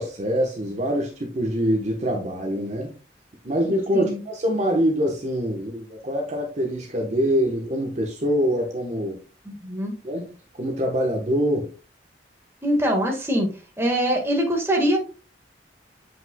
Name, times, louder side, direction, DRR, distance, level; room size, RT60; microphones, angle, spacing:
voice 1, 0.0-2.9 3.4-9.2 10.0-10.2 10.6-11.7, equal, 40° right, 1.1 m, -24 dB
voice 2, 9.4-9.9 12.6-13.5 13.8-15.0, equal, 15° right, 1.7 m, -23 dB
7.9 x 5.5 x 2.3 m
head